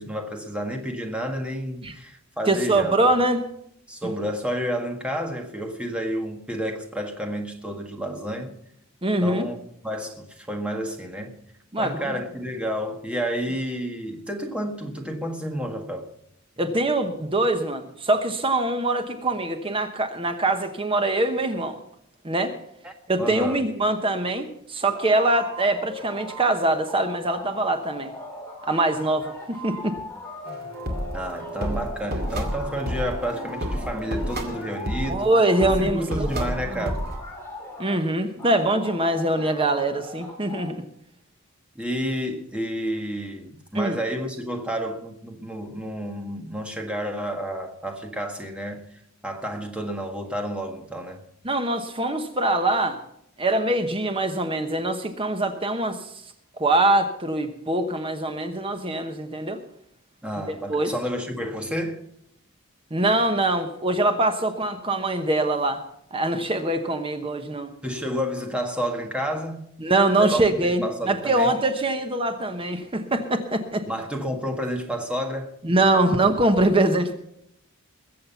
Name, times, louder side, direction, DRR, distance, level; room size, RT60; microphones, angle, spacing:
voice 1, 0.0-3.2 3.9-8.5 9.2-9.6 9.8-11.3 11.8-16.1 22.8-22.9 23.2-23.6 31.1-35.3 35.8-37.0 41.7-51.2 60.2-62.0 67.8-69.7 70.2-71.5 73.9-75.5, equal, 5° right, 1.7 m, -30 dB
voice 2, 2.5-3.4 9.0-9.5 11.7-12.1 16.6-21.8 22.2-22.5 23.1-28.1 28.7-29.9 35.1-36.8 37.8-40.8 43.7-44.0 51.4-53.0 53.4-56.1 56.6-59.6 60.5-60.9 62.9-65.8 66.1-67.7 69.8-73.8 75.6-77.1, right 2 dB, 25° right, 1.0 m, -23 dB
sound 1, 24.9-26.6 26.9-35.8 36.2-38.0 38.4-40.7, left 1 dB, 10° left, 3.1 m, -39 dB
sound 2, 30.5-37.2, equal, 45° right, 2.2 m, -31 dB
21.0 x 7.7 x 5.7 m
head